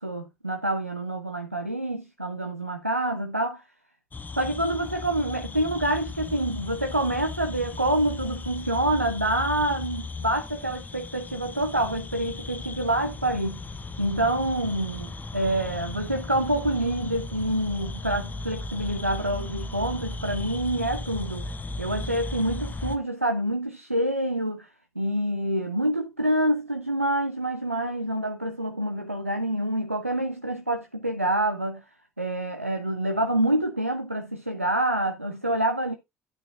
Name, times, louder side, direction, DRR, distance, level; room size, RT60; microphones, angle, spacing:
voice 1, 0.0-3.6 4.4-13.6 14.0-21.5 21.8-24.7 25.0-31.8 32.2-36.0, right 1 dB, 90° right, 0.5 m, -27 dB
sound 1, 4.1-23.0, left 3 dB, 25° left, 1.1 m, -36 dB
10.0 x 8.8 x 2.4 m
figure-of-eight pair, 50°, 7 cm